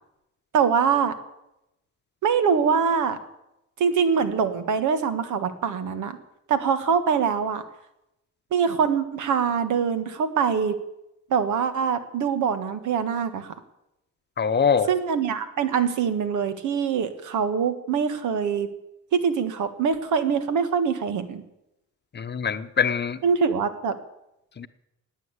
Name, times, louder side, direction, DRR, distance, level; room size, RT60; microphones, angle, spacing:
voice 1, 0.5-1.1 2.2-3.2 3.8-6.2 6.5-7.6 8.5-10.8 11.3-13.5 14.9-18.7 19.1-21.4 23.2-24.0, right 6 dB, 80° right, 11 dB, 1.6 m, -24 dB
voice 2, 14.4-14.9 22.1-23.2 24.6-24.7, left 6 dB, 35° left, 11 dB, 0.9 m, -23 dB
17.5 x 9.2 x 8.2 m, 0.88 s
cardioid pair, 90°, 30 cm